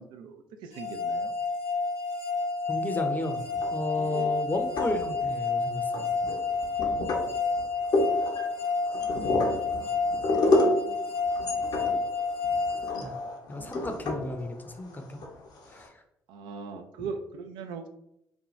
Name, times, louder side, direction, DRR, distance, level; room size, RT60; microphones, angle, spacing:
voice 1, 0.0-1.3 4.0-4.3 9.1-11.0 12.7-13.1 13.5-13.8 16.3-17.9, right 5 dB, 75° right, 6 dB, 0.3 m, -42 dB
sound 1, 0.7-13.7, left 4 dB, 85° left, 0.9 m, -30 dB
voice 2, 2.7-3.4 3.7-6.1 13.0-13.1 13.5-15.2 15.7-16.0, left 1 dB, 25° left, 5 dB, 0.6 m, -33 dB
sound 2, 3.4-4.1 4.6-5.5 5.9-15.9, left 2 dB, 60° left, 0.6 m, -30 dB
2.6 x 2.2 x 3.0 m, 0.78 s
hypercardioid pair, 50°, 8 cm